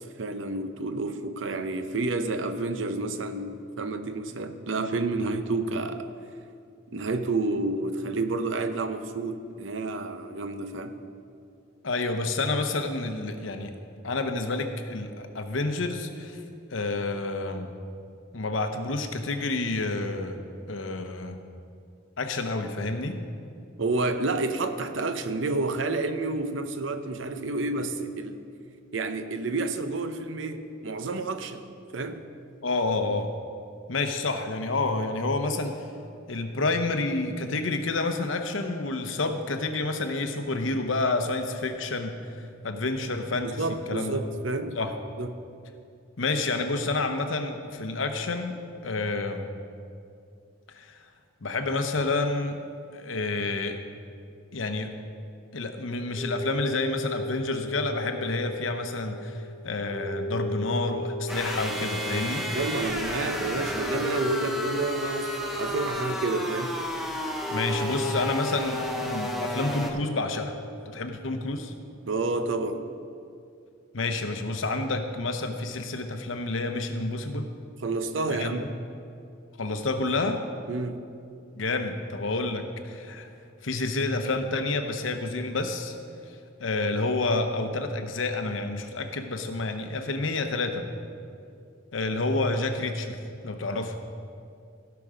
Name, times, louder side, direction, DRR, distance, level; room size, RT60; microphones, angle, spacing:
voice 1, 0.0-6.1 6.9-11.0 23.8-28.5 28.9-31.6 31.9-32.3 43.4-44.8 45.2-45.4 62.5-66.8 72.1-72.9 77.8-78.7 80.7-81.0, right 3 dB, 75° right, 9 dB, 0.7 m, -30 dB
voice 2, 11.8-13.7 14.0-16.4 16.7-17.7 18.3-20.4 20.7-21.4 22.2-23.2 32.6-33.3 33.9-35.9 36.3-43.6 43.9-44.2 44.8-44.9 46.2-48.5 48.8-49.5 50.7-51.0 51.4-52.6 52.9-53.8 54.5-54.9 55.5-62.5 67.5-70.6 70.9-71.7 73.9-77.5 78.3-78.7 79.6-80.4 81.6-83.3 83.6-86.0 86.6-90.9 91.9-94.0, left 3 dB, 90° left, 6 dB, 0.9 m, -29 dB
sound 1, 55.6-71.0, equal, 20° right, 2.5 m, -37 dB
sound 2, 61.3-69.9, left 1 dB, ahead, 0.9 m, -32 dB
16.0 x 6.0 x 5.1 m, 2.4 s
head